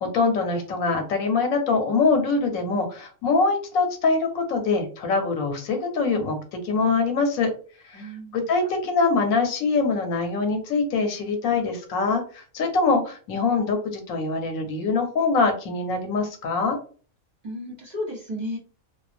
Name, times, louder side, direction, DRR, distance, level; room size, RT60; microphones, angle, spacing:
voice 1, 0.0-6.4 6.6-7.5 7.9-8.0 8.3-16.8, left 4 dB, 85° left, 4 dB, 1.1 m, -23 dB
voice 2, 7.9-8.5 17.4-18.6, left 1 dB, 40° right, -3 dB, 0.7 m, -33 dB
2.4 x 2.2 x 2.4 m, 0.39 s
omnidirectional pair, 1.4 m